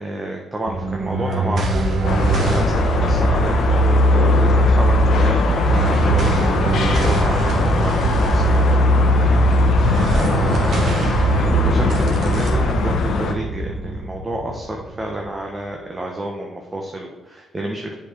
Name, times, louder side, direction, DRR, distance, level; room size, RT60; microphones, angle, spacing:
voice 1, 0.0-9.8 10.1-17.9, right 1 dB, 25° right, 1 dB, 1.0 m, -30 dB
sound 1, 0.7-15.3, right 1 dB, 55° right, 1.8 m, -19 dB
sound 2, 2.0-13.3, left 4 dB, 65° left, 0.9 m, -23 dB
7.7 x 4.8 x 5.0 m, 1.1 s
cardioid pair, 90°, 0 cm